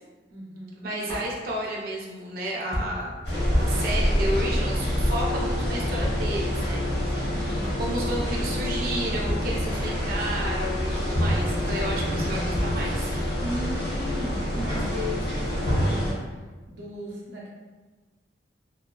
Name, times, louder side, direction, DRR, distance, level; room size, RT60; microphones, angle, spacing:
voice 1, 0.3-0.9 7.2-7.8 13.4-16.2 16.7-17.5, left 1 dB, 80° right, -4 dB, 0.7 m, -36 dB
voice 2, 0.8-3.1 3.5-6.8 7.1-7.2 7.8-13.1, right 1 dB, 50° right, -3 dB, 0.4 m, -32 dB
Drum kit, 1.1-1.9 2.2-2.3 2.5-3.6 3.8-3.9 4.1-4.6 4.9-5.2 5.5-5.6 5.7-5.8 6.0-6.8 7.1-7.2 7.4-7.9 8.2-8.5 8.7-8.8 9.0-9.1 9.3-10.1 10.4-10.5 10.6-11.2 11.5-11.7 12.0-12.1 12.3-12.4 12.5-13.4 13.6-13.7 13.9-14.0, equal, 15° left, 0.4 m, -34 dB
sound 1, 3.2-16.1, equal, 60° left, 0.8 m, -26 dB
2.6 x 2.3 x 2.2 m, 1.3 s
head